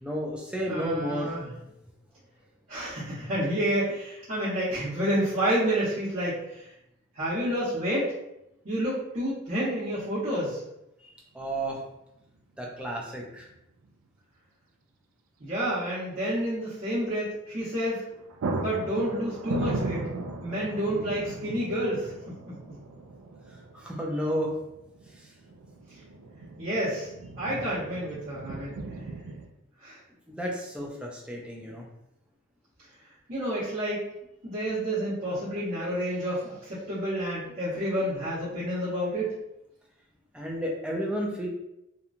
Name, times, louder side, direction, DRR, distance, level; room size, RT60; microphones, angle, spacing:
voice 1, 0.0-1.4 11.0-11.8 12.6-13.5 23.7-24.5 30.3-31.9 40.3-41.5, equal, 5° right, -2 dB, 0.4 m, -32 dB
voice 2, 0.7-1.5 2.7-6.6 7.1-8.1 8.6-10.6 15.4-18.0 18.6-20.1 20.4-22.5 26.6-27.1 27.4-28.8 29.8-30.0 33.3-34.0 34.4-39.3, equal, 50° right, -13 dB, 0.9 m, -29 dB
sound 1, 11.5-11.6 13.2-13.6 13.8-13.9 17.6-17.8 18.1-29.5, right 2 dB, 90° right, 0.4 m, -37 dB
2.9 x 2.2 x 2.5 m, 0.85 s
head